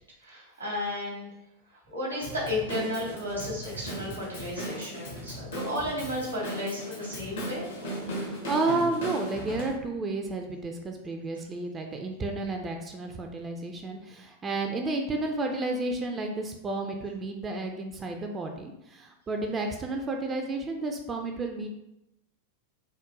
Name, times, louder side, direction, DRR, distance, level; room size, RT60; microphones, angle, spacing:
voice 1, 0.2-1.3 1.9-7.9, left 1 dB, 85° right, -4 dB, 1.1 m, -33 dB
Drum kit / Drum, 2.2-9.7, equal, 65° left, 0.9 m, -37 dB
voice 2, 3.8-4.2 8.1-21.7, right 2 dB, 20° right, 3 dB, 0.3 m, -32 dB
3.6 x 2.1 x 2.9 m, 0.85 s
figure-of-eight pair, 90°, 0 cm